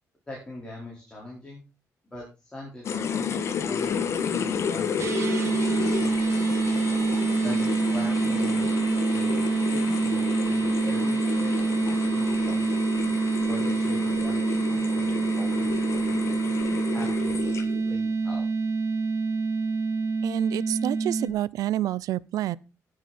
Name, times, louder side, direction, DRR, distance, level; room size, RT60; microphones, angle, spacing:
voice 1, 0.3-1.6 2.0-5.0 5.4-6.1 7.4-8.7 9.1-12.8 13.5-16.3 16.9-17.5 17.8-18.4, left 1 dB, 15° left, 4.6 m, -42 dB
sound 1, 2.8-17.9, left 7 dB, 50° left, 1.6 m, -31 dB
sound 2, 5.0-21.3, right 4 dB, 50° right, 2.5 m, -26 dB
voice 2, 20.2-22.6, right 13 dB, 80° right, 0.7 m, -28 dB
17.5 x 7.9 x 4.3 m
cardioid pair, 155°, 6 cm